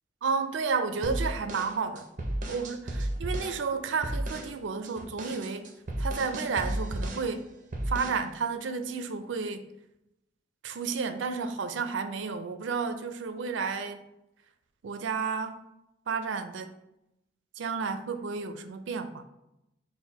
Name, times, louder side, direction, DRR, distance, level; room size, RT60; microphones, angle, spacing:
voice 1, 0.2-2.1 2.5-5.7 6.0-7.5 7.9-9.6 10.6-14.0 14.8-15.6 16.1-16.8 17.6-19.2, right 5 dB, 90° right, 9 dB, 0.4 m, -32 dB
sound 1, 1.0-3.6 4.0-4.5 4.8-7.3 7.7-8.2, right 1 dB, 45° right, 0.6 m, -33 dB
4.4 x 2.2 x 4.1 m, 0.86 s
head